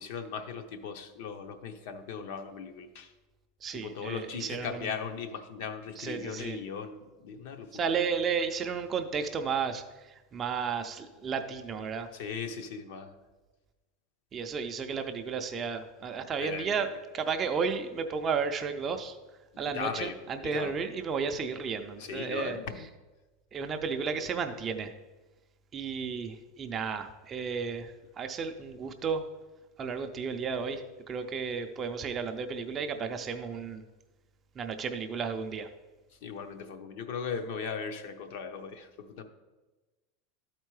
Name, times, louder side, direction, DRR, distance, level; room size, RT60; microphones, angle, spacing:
voice 1, 0.0-3.1 3.7-8.1 12.1-13.1 16.4-16.9 19.7-20.8 22.0-22.9 36.1-39.2, left 6 dB, 60° left, 7 dB, 0.7 m, -38 dB
voice 2, 3.6-4.8 6.0-6.6 7.7-12.1 14.3-16.9 17.1-19.2 19.6-22.6 23.5-24.9 25.7-29.3 29.8-33.8 34.6-35.7, right 6 dB, 20° right, 6 dB, 0.4 m, -33 dB
12.0 x 4.4 x 4.7 m, 1.2 s
supercardioid pair, 165°, 0 cm